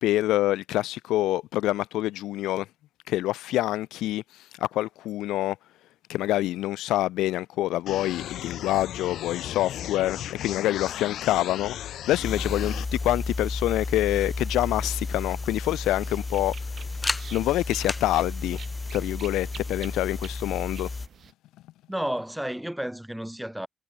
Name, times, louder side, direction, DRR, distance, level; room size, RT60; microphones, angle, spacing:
voice 1, 0.0-2.7 3.1-5.6 6.1-16.5 17.3-18.6 18.9-20.9, left 15 dB, 90° left, 2.3 m, -26 dB
sound 1, 7.9-12.9, left 11 dB, 75° left, 3.6 m, -36 dB
sound 2, 12.2-21.1, left 3 dB, 25° left, 1.0 m, -32 dB
sound 3, 16.0-21.3, right 8 dB, 55° right, 4.0 m, -48 dB
voice 2, 21.9-23.7, right 1 dB, 5° right, 3.6 m, -31 dB
cardioid pair, 90°, 0 cm